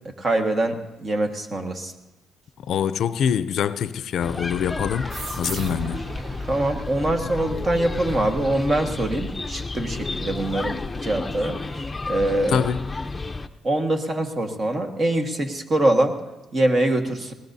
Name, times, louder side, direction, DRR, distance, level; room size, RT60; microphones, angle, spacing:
voice 1, 0.0-1.9 6.5-11.6 12.1-12.7 13.6-16.2 16.5-17.3, right 1 dB, 40° right, 1.5 m, -24 dB
voice 2, 2.7-5.1 5.4-6.0 12.5-12.8, left 8 dB, 70° left, 0.4 m, -24 dB
sound 1, 4.2-13.5, left 3 dB, 20° left, 0.6 m, -31 dB
sound 2, 5.1-8.3, right 3 dB, 55° right, 0.9 m, -37 dB
20.5 x 19.0 x 2.7 m
cardioid pair, 90°, 0 cm